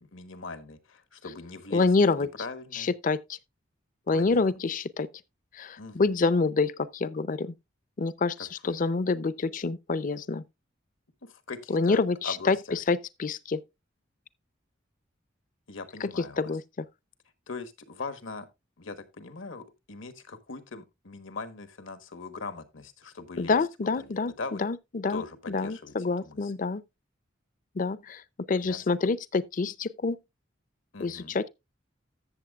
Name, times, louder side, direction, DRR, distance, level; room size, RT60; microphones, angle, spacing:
voice 1, 0.0-1.9 2.2-2.9 4.1-4.4 5.8-6.1 8.6-8.8 11.2-12.0 12.2-12.8 15.7-16.5 17.5-18.5 18.8-24.6 25.1-25.9 26.2-26.5 28.6-28.9 30.9-31.4, left 3 dB, 80° left, 1.3 m, -41 dB
voice 2, 1.7-2.3 2.7-3.2 4.1-5.1 5.6-7.5 8.0-10.4 11.7-13.6 16.0-16.6 23.4-24.3 24.6-26.8 27.8-28.2 28.5-30.2 31.0-31.5, left 3 dB, 45° left, 0.5 m, -27 dB
13.5 x 7.3 x 2.3 m
head